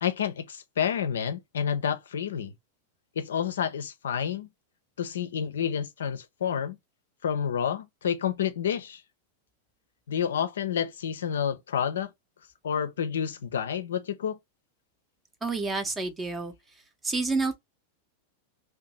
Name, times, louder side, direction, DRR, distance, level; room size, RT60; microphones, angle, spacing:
voice 1, 0.0-2.5 3.2-4.5 5.0-6.8 7.2-9.0 10.1-12.1 12.6-14.4, left 8 dB, 65° left, 0.4 m, -29 dB
voice 2, 15.4-16.5 17.0-17.6, right 3 dB, 15° right, 0.5 m, -29 dB
2.6 x 2.2 x 2.8 m
figure-of-eight pair, 90°, 0 cm